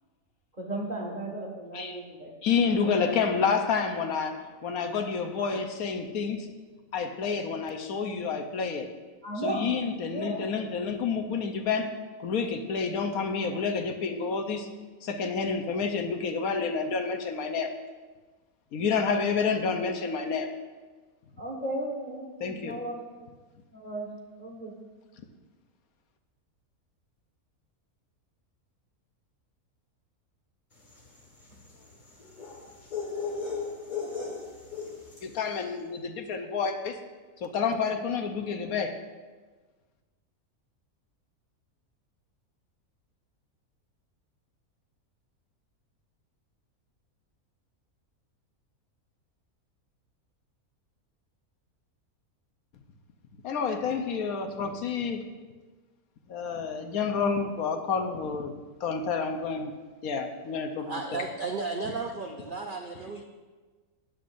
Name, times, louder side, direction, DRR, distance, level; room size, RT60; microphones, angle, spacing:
voice 1, 0.6-2.3 2.7-2.9 3.3-3.4 9.2-9.7 10.1-10.5 21.4-23.1 23.7-24.1 24.4-24.7, right 1 dB, 30° right, 0 dB, 1.6 m, -35 dB
voice 2, 2.4-6.5 6.9-8.9 9.4-11.9 12.2-14.7 15.0-17.7 18.7-20.5 22.4-22.8 35.2-37.0 37.4-39.0 53.4-55.2 56.3-58.5 58.8-59.7 60.0-61.2, left 5 dB, 75° left, 6 dB, 1.3 m, -29 dB
sound 1, 30.8-35.4, left 5 dB, 30° left, 1.7 m, -37 dB
voice 3, 60.8-63.2, right 4 dB, 55° right, 4 dB, 0.6 m, -34 dB
14.5 x 10.0 x 2.6 m, 1.3 s
omnidirectional pair, 1.6 m